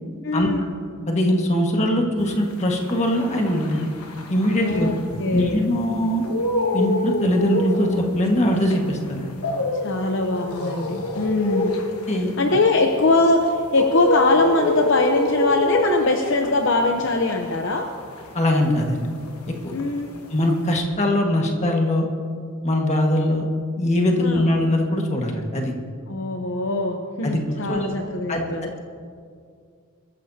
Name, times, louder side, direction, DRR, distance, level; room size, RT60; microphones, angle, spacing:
voice 1, 0.2-0.7 4.6-5.6 9.7-11.8 12.4-17.9 19.7-20.1 24.2-24.5 26.1-28.7, left 2 dB, 55° left, 3 dB, 0.8 m, -22 dB
voice 2, 1.1-3.9 4.3-4.9 5.3-6.2 6.7-9.3 12.1-12.3 18.3-19.1 20.3-22.1 22.6-23.5 23.8-25.7 27.2-27.4 27.7-27.9 28.3-28.4, left 1 dB, 30° left, 1 dB, 1.7 m, -21 dB
sound 1, 2.4-5.7 6.1-19.5 19.7-20.8, left 1 dB, 80° left, 1.4 m, -27 dB
23.5 x 14.0 x 2.8 m, 2.2 s
head